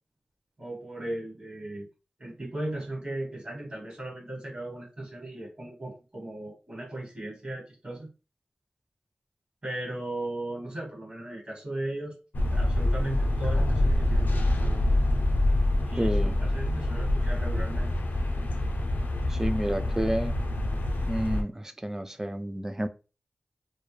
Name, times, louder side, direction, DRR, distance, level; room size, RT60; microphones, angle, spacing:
voice 1, 0.6-1.9 2.2-8.1 9.6-12.2 12.5-14.3 14.6-14.8 15.9-17.9, right 1 dB, 40° right, 1.2 m, -37 dB
sound 1, 12.3-21.4, left 1 dB, 75° left, 0.5 m, -26 dB
voice 2, 16.0-16.4 19.3-20.3 21.1-22.9, right 1 dB, 15° right, 0.3 m, -30 dB
2.3 x 2.1 x 3.1 m
wide cardioid pair, 65°, 3 cm